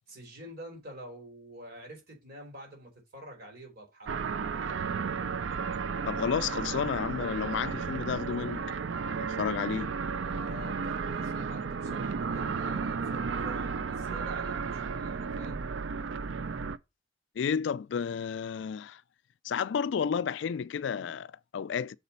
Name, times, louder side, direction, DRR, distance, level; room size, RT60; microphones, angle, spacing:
voice 1, 0.1-4.1 10.2-15.7, right 1 dB, 55° right, 3.4 m, -47 dB
sound 1, 4.1-16.8, right 5 dB, 75° right, 0.5 m, -33 dB
voice 2, 6.1-8.6 9.1-9.9 17.4-19.0 19.4-22.0, left 7 dB, 70° left, 0.3 m, -31 dB
6.6 x 4.1 x 5.5 m
head